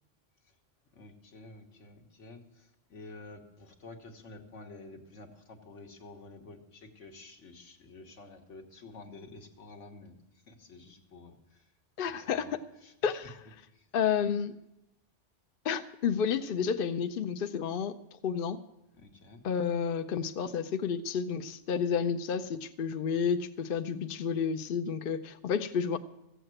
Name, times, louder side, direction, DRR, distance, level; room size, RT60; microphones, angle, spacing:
voice 1, 0.9-10.2 10.5-11.7 12.0-12.5 12.8-13.2 13.7-13.9 19.0-19.4, left 3 dB, 75° left, 3 dB, 1.7 m, -50 dB
voice 2, 12.0-12.6 13.0-13.3 13.9-14.5 15.6-17.9 18.2-18.6 19.4-26.0, left 7 dB, 55° left, 8 dB, 0.7 m, -30 dB
14.5 x 8.0 x 7.7 m, 0.88 s
omnidirectional pair, 1.2 m